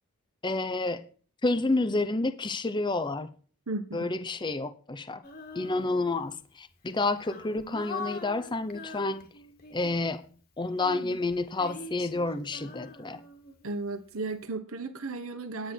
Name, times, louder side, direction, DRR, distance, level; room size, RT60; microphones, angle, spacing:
voice 1, 0.4-1.0 1.4-3.3 3.9-5.2 5.6-9.3 9.7-10.3 10.6-13.2, left 2 dB, 20° left, 0.6 m, -29 dB
voice 2, 3.7-4.1 13.6-15.7, right 3 dB, 65° right, 1.2 m, -35 dB
Female singing, 5.2-6.3 6.9-10.1 10.7-13.9, left 3 dB, 40° left, 1.9 m, -43 dB
10.0 x 9.6 x 4.5 m
head